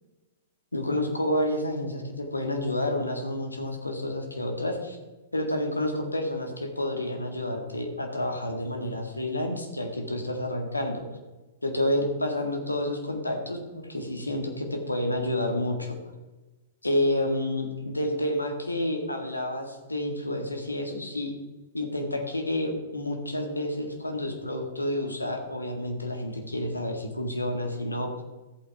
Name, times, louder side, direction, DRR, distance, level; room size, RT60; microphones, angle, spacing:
voice 1, 0.7-5.0 5.3-11.0 11.6-15.9 16.8-21.3 21.7-28.2, left 1 dB, 85° left, 3 dB, 1.9 m, -29 dB
14.0 x 8.6 x 3.6 m, 1.2 s
figure-of-eight pair, 105°, 0 cm